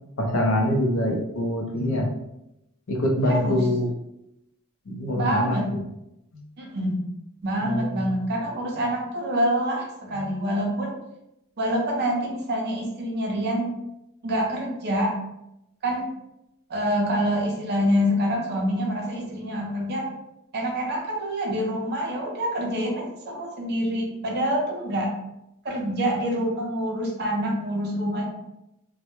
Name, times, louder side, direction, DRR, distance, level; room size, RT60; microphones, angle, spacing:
voice 1, 0.2-2.1 2.9-3.9 4.9-5.6 6.3-6.4 7.6-8.1 10.1-10.3, left 1 dB, 65° left, 1 dB, 0.5 m, -24 dB
voice 2, 3.2-3.6 5.1-5.7 6.6-7.0 7.4-11.0 11.6-13.7 14.2-15.1 15.8-16.1 16.7-20.1 20.5-25.1 25.6-28.3, equal, 50° right, 0 dB, 0.5 m, -26 dB
2.1 x 2.1 x 2.9 m, 0.87 s
head